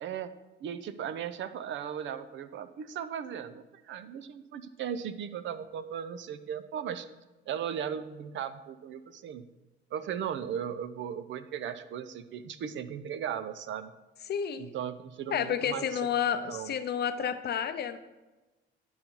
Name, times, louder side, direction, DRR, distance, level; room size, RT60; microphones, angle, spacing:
voice 1, 0.0-0.3 0.6-7.1 7.5-9.5 9.9-13.9 14.6-15.9 16.5-16.7, right 8 dB, 70° right, 12 dB, 0.5 m, -37 dB
voice 2, 14.3-14.7 15.3-18.0, left 8 dB, 55° left, 10 dB, 0.6 m, -30 dB
10.0 x 3.9 x 4.5 m, 1.1 s
cardioid pair, 90°, 20 cm